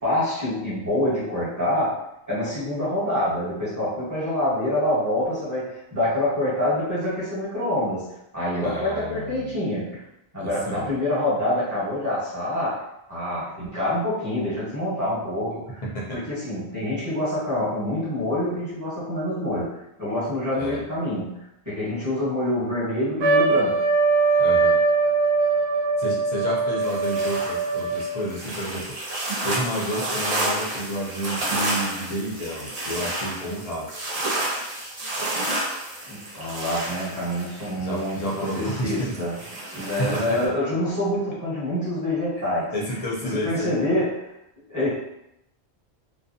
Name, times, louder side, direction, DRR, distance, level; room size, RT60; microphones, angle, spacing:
voice 1, 0.0-2.0 2.3-8.1 8.3-10.0 10.3-12.8 13.1-15.8 16.1-21.4 21.6-23.8 36.1-39.4 39.7-42.7 43.2-44.2 44.7-44.9, left 1 dB, 15° right, -10 dB, 1.2 m, -26 dB
voice 2, 8.6-9.6 10.4-10.9 15.8-16.2 20.5-20.8 24.4-24.8 26.0-29.0 29.4-34.0 37.7-39.3 39.8-40.5 42.4-44.0, equal, 50° left, -4 dB, 0.5 m, -31 dB
Trumpet, 23.2-28.2, right 3 dB, 75° right, 0.8 m, -21 dB
sound 1, 26.8-40.4, right 1 dB, 45° right, 0.6 m, -31 dB
2.5 x 2.2 x 2.6 m, 0.83 s
omnidirectional pair, 1.1 m